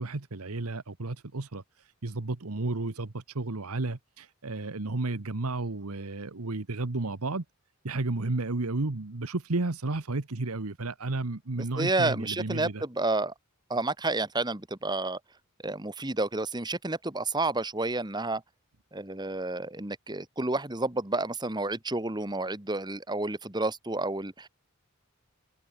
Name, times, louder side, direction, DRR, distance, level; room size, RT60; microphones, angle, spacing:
voice 1, 0.0-1.6 2.0-7.4 7.8-12.8, right 2 dB, 90° right, 1.2 m, -32 dB
voice 2, 11.8-13.3 13.7-15.2 15.6-18.4 18.9-24.5, right 2 dB, 20° right, 1.7 m, -30 dB
head